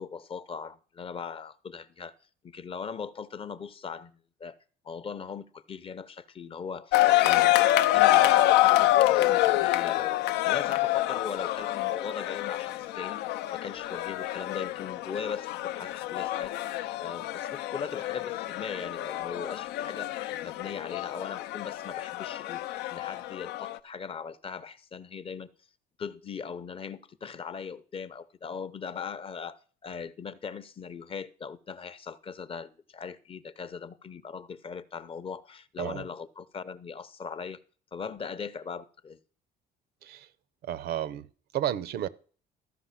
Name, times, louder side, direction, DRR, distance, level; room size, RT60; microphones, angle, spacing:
voice 1, 0.0-2.1 2.4-4.6 4.8-7.6 7.9-13.2 13.5-16.5 17.0-20.1 20.4-22.6 22.9-25.5 26.0-37.6 37.9-39.2, left 6 dB, 35° left, 0.6 m, -39 dB
sound 1, 6.9-23.8, left 15 dB, 85° left, 0.5 m, -26 dB
voice 2, 40.6-42.1, right 11 dB, 65° right, 0.6 m, -32 dB
13.5 x 5.4 x 5.8 m
cardioid pair, 110°, 17 cm